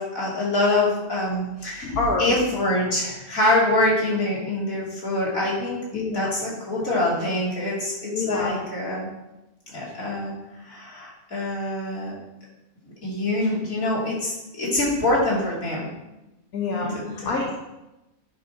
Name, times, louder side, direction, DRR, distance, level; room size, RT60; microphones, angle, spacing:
voice 1, 0.0-9.1 9.7-10.3 10.7-12.1 13.0-15.9 16.7-17.3, left 1 dB, 70° left, -5 dB, 3.5 m, -25 dB
voice 2, 2.0-2.3 5.9-6.3 8.1-8.6 16.5-17.5, left 3 dB, 85° left, -1 dB, 1.7 m, -26 dB
9.5 x 5.3 x 5.9 m, 0.97 s
omnidirectional pair, 1.5 m